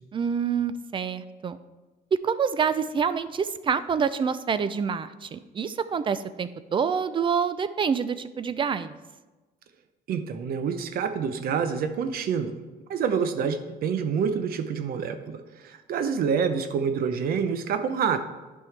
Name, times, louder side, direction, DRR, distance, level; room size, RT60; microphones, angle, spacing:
voice 1, 0.1-1.6 2.2-9.0, right 6 dB, 30° right, 14 dB, 0.4 m, -27 dB
voice 2, 10.1-12.5 12.9-18.2, right 6 dB, 60° right, 9 dB, 0.7 m, -27 dB
10.5 x 5.5 x 3.3 m, 1.2 s
cardioid pair, 110°, 17 cm